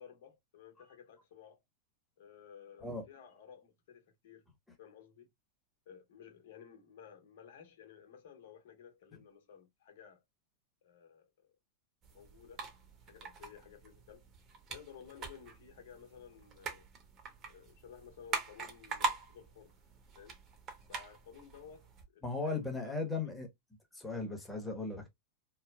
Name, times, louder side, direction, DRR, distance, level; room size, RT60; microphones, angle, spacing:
voice 1, 0.0-1.6 2.2-4.5 4.8-5.3 5.9-10.2 10.8-11.3 12.1-12.7 13.0-14.2 14.7-16.9 17.5-19.7 20.2-20.4 20.9-21.9 22.1-23.1, left 8 dB, 70° left, 1.1 m, -55 dB
sound 1, 12.0-22.0, right 4 dB, 35° right, 0.9 m, -43 dB
voice 2, 22.2-23.5 23.9-25.1, left 3 dB, 10° left, 1.0 m, -37 dB
3.2 x 2.0 x 2.2 m
hypercardioid pair, 120°, 0 cm